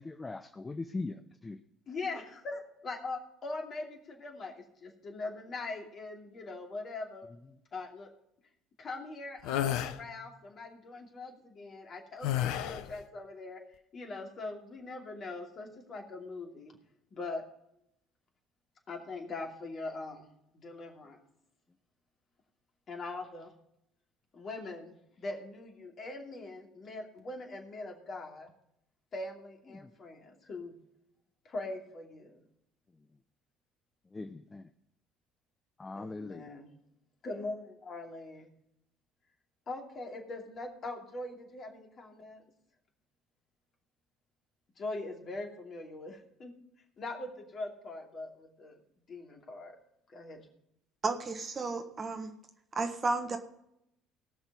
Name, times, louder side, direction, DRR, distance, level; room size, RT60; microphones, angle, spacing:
voice 1, 0.0-1.6 29.7-29.9 34.1-34.7 35.8-36.4, left 3 dB, 20° left, 10 dB, 0.6 m, -40 dB
voice 2, 1.9-7.3 7.7-8.1 8.8-16.8 17.1-17.4 18.9-20.3 20.5-21.2 22.9-23.5 24.3-28.5 29.1-30.8 31.4-32.4 35.9-36.7 37.2-38.5 39.7-42.4 44.8-46.5 47.0-48.8 49.1-49.8 50.1-50.4, left 2 dB, 40° left, 2 dB, 2.7 m, -42 dB
sound 1, 9.4-10.0 12.2-12.9, left 11 dB, 60° left, 0.7 m, -31 dB
voice 3, 51.0-52.3 52.7-53.4, right 3 dB, 30° right, 7 dB, 1.4 m, -32 dB
18.5 x 6.2 x 5.3 m, 0.78 s
figure-of-eight pair, 55°, 0 cm